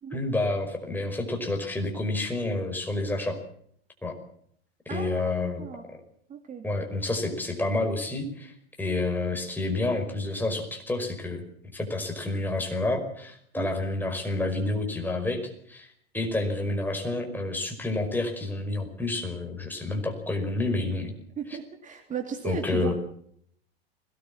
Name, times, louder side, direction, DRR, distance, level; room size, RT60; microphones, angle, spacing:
voice 1, 0.1-3.4 4.0-4.2 4.9-5.6 6.6-11.4 11.7-15.4 15.7-21.1 22.4-22.9, left 2 dB, 5° left, 3 dB, 5.2 m, -29 dB
voice 2, 4.9-5.3 5.6-5.9 6.3-6.7 13.5-13.7 21.4-22.9, right 7 dB, 25° right, 4 dB, 3.0 m, -35 dB
21.0 x 18.5 x 7.4 m, 0.66 s
figure-of-eight pair, 90°, 31 cm